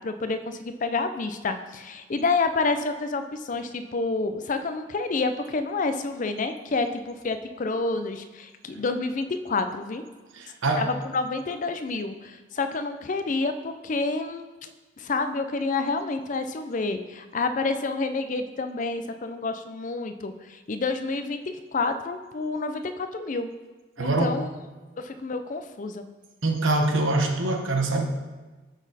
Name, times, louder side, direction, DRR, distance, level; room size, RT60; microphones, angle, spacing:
voice 1, 0.0-10.0 10.8-14.7 15.0-23.5 24.0-24.5 25.0-26.1, left 3 dB, 40° left, 8 dB, 0.4 m, -29 dB
voice 2, 10.3-10.9 24.0-24.4 26.4-28.1, right 2 dB, 80° right, 2 dB, 1.1 m, -24 dB
12.0 x 4.1 x 4.1 m, 1.3 s
head